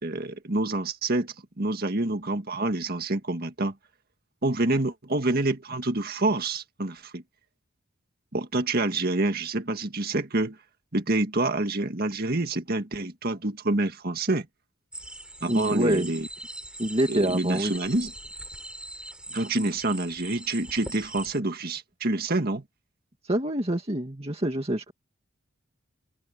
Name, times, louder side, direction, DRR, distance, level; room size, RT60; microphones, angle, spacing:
voice 1, 0.0-3.7 4.4-7.2 8.3-10.6 10.9-14.5 15.4-16.3 17.1-18.1 19.3-22.6, right 2 dB, 45° right, 1.8 m, -27 dB
sound 1, 14.9-21.4, right 1 dB, 5° right, 7.2 m, -41 dB
voice 2, 15.5-16.1 16.8-17.7 23.2-24.9, right 1 dB, 30° right, 2.1 m, -26 dB
open air
head